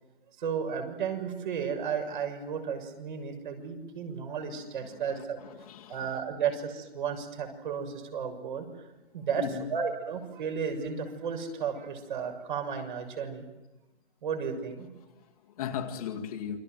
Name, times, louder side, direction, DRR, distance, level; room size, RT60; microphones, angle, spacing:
voice 1, 0.4-5.4 5.9-8.7 9.1-9.4 9.7-13.4 14.2-14.9, right 7 dB, 45° right, 5 dB, 6.7 m, -33 dB
voice 2, 4.8-6.2 9.3-9.8 15.1-16.6, left 8 dB, 35° left, 2 dB, 2.1 m, -38 dB
29.0 x 25.0 x 7.8 m, 1.1 s
hypercardioid pair, 160°, 33 cm